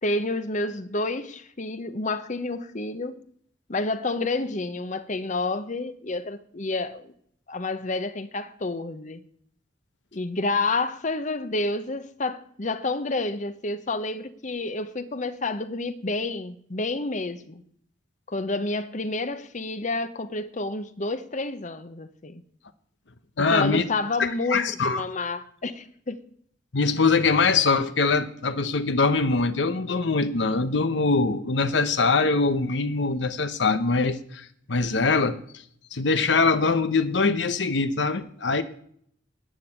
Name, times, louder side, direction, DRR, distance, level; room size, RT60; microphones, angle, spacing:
voice 1, 0.0-3.2 3.7-7.1 7.5-9.2 10.1-17.6 18.3-22.4 23.4-26.2, left 2 dB, 40° left, 0.9 m, -29 dB
voice 2, 23.4-23.8 24.2-25.0 26.7-35.4 35.9-38.6, left 4 dB, 70° left, 0.9 m, -23 dB
11.0 x 9.8 x 8.7 m
head